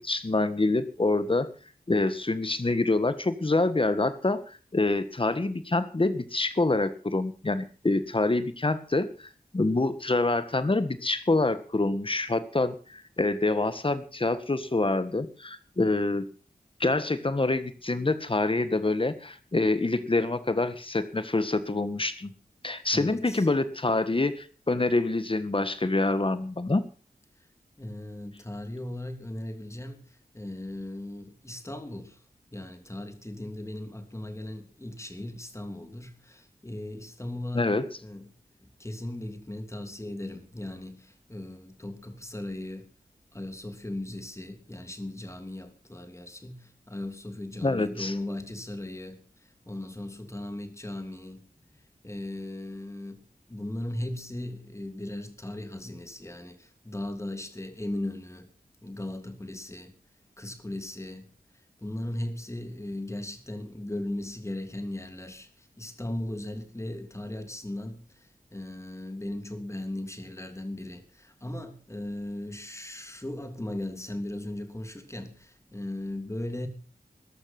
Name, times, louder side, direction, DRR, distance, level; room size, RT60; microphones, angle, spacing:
voice 1, 0.0-1.5 1.9-16.2 16.8-22.3 22.6-26.8 37.5-37.9 47.6-48.1, left 2 dB, 35° left, 1.6 m, -26 dB
voice 2, 22.9-23.5 27.8-32.2 32.5-38.3 38.6-42.9 43.3-51.5 52.0-53.2 53.5-58.5 58.8-59.9 60.4-61.3 61.8-76.7, left 1 dB, 20° left, 3.0 m, -37 dB
14.5 x 12.0 x 6.0 m
wide cardioid pair, 60°, 15 cm